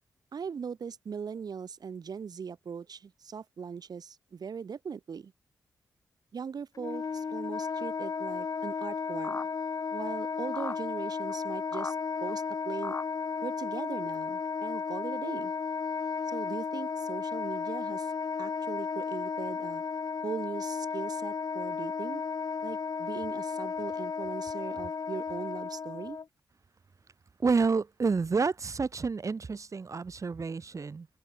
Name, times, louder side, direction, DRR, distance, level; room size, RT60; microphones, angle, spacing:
voice 1, 0.3-5.3 6.3-9.4 9.9-12.0 12.2-12.9 13.4-15.5 16.3-18.1 18.4-19.8 20.2-22.2 22.6-26.2, right 6 dB, 65° right, 5.2 m, -40 dB
Wind instrument woodwind instrument, 6.7-26.2, left 5 dB, 60° left, 3.1 m, -34 dB
sound 1, 9.2-9.5 10.5-10.8 11.3-11.4 11.7-11.9 12.3-12.4 12.8-13.0 14.1-14.2 14.7-14.8, left 3 dB, 30° left, 2.7 m, -38 dB
voice 2, 27.4-31.1, right 4 dB, 50° right, 1.9 m, -29 dB
cardioid pair, 50°, 7 cm